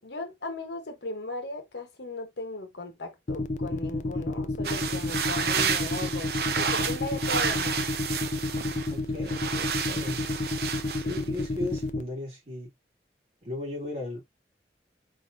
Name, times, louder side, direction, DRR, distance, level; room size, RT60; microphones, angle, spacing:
voice 1, 0.0-7.8 11.0-11.3, left 2 dB, 75° left, 1.2 m, -37 dB
sound 1, 3.3-12.0, left 2 dB, 45° left, 0.4 m, -30 dB
sound 2, 4.6-8.9 9.2-11.4, right 6 dB, 60° right, 0.7 m, -30 dB
voice 2, 8.9-10.2 11.0-12.7 13.4-14.3, left 2 dB, 35° right, 2.7 m, -36 dB
4.3 x 4.0 x 2.7 m
head